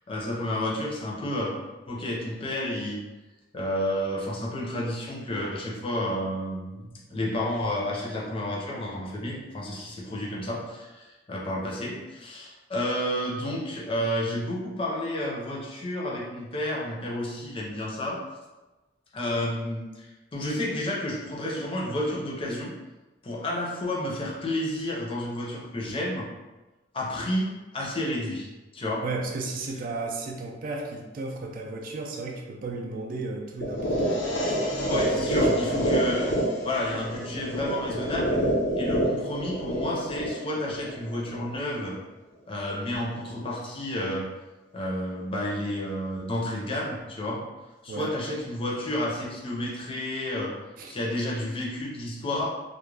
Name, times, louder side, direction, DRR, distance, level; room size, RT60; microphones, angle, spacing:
voice 1, 0.1-1.5 1.9-3.0 3.5-18.2 19.1-22.7 23.2-26.3 26.9-28.5 28.7-29.0 34.9-36.3 36.6-38.4 38.7-42.0 42.5-44.3 44.7-47.4 47.8-50.5 50.8-52.5, left 1 dB, 30° left, -4 dB, 0.5 m, -31 dB
voice 2, 29.0-35.8 47.9-48.1 50.8-50.9, right 3 dB, 50° right, 1 dB, 0.3 m, -35 dB
sound 1, 33.6-41.6, right 1 dB, 75° left, 0.5 m, -27 dB
2.2 x 2.1 x 3.1 m, 1.1 s
head